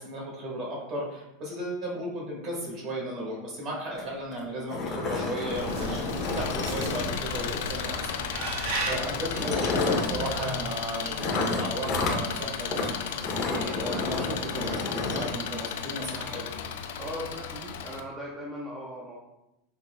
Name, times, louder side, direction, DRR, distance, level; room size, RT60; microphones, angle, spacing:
voice 1, 0.0-8.1 8.8-12.9 13.3-16.5, right 1 dB, 45° right, -3 dB, 1.3 m, -35 dB
sound 1, 4.0-4.1 4.3-4.4 4.7-7.5 8.5-8.7 9.2-10.2 11.2-12.2 12.7-12.9 13.2-15.3, left 3 dB, 35° left, 0.6 m, -30 dB
Engine, 5.5-18.0, left 7 dB, 75° left, 0.3 m, -35 dB
sound 2, 5.5-10.6, right 2 dB, 60° right, 0.8 m, -36 dB
voice 2, 17.0-19.2, equal, 20° right, -4 dB, 0.5 m, -39 dB
3.9 x 2.7 x 2.2 m, 0.90 s
supercardioid pair, 130°, 0 cm